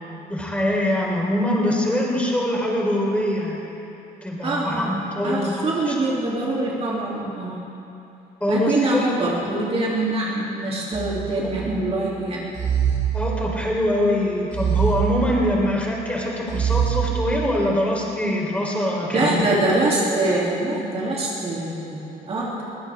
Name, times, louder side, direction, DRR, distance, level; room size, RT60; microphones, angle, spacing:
voice 1, 0.3-3.6 4.2-6.0 8.4-9.1 11.3-11.7 13.1-19.5, left 1 dB, 10° left, -3 dB, 3.9 m, -23 dB
voice 2, 4.4-4.9 5.2-7.6 8.5-12.5 19.1-22.6, right 2 dB, 35° right, -6 dB, 3.2 m, -24 dB
sound 1, 10.9-11.9 12.5-13.8 14.5-15.8 16.5-17.6, right 8 dB, 55° right, 3.6 m, -24 dB
22.5 x 16.0 x 3.7 m, 2.8 s
cardioid pair, 110°, 17 cm